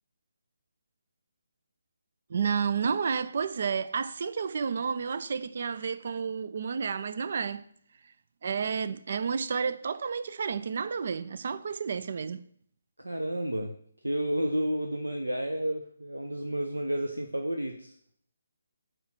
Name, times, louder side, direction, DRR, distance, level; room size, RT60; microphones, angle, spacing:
voice 1, 2.3-7.6 8.4-12.4, right 6 dB, 45° right, 0.4 m, -31 dB
voice 2, 13.0-13.8 14.0-17.9, right 1 dB, 80° right, 0.8 m, -31 dB
8.9 x 3.2 x 5.9 m
figure-of-eight pair, 145°, 0 cm